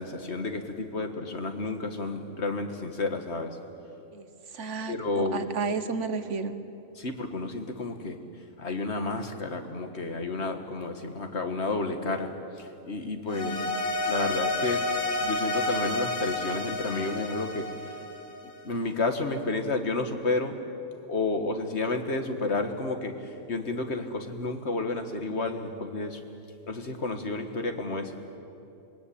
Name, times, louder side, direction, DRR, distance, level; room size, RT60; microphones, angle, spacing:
voice 1, 0.0-3.6 4.9-5.5 7.0-8.2 8.6-12.3 12.6-13.6 14.1-14.8 15.2-17.6 18.6-20.6 21.1-26.2 26.7-28.2, left 3 dB, 50° left, 6 dB, 1.9 m, -31 dB
voice 2, 4.1-6.6 13.4-13.7, right 4 dB, 55° right, 11 dB, 1.4 m, -32 dB
sound 1, 13.3-18.6, left 2 dB, 75° left, 3.0 m, -30 dB
27.0 x 21.5 x 8.6 m, 2.8 s
omnidirectional pair, 1.5 m